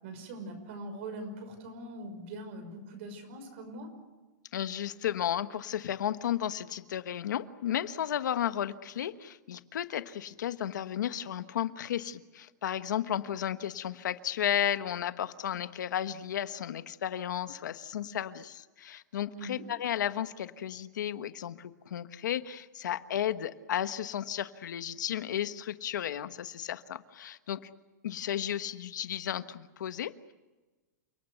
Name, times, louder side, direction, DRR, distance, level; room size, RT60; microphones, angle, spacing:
voice 1, 0.0-3.9 19.3-19.6, right 1 dB, 40° right, 8 dB, 5.6 m, -42 dB
voice 2, 4.5-27.7 28.0-30.3, left 10 dB, 85° left, 11 dB, 1.3 m, -33 dB
29.0 x 19.0 x 8.0 m, 1.2 s
supercardioid pair, 180°, 10 cm